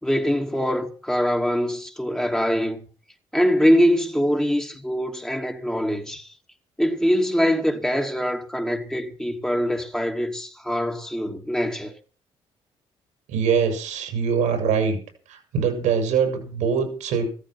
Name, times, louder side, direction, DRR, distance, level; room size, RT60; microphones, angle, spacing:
voice 1, 0.0-2.9 3.3-6.3 6.8-11.9, equal, 5° left, 2.7 m, -23 dB
voice 2, 13.3-15.0 15.3-17.3, right 6 dB, 90° right, 6.3 m, -23 dB
14.5 x 13.5 x 6.0 m
supercardioid pair, 70°, 12 cm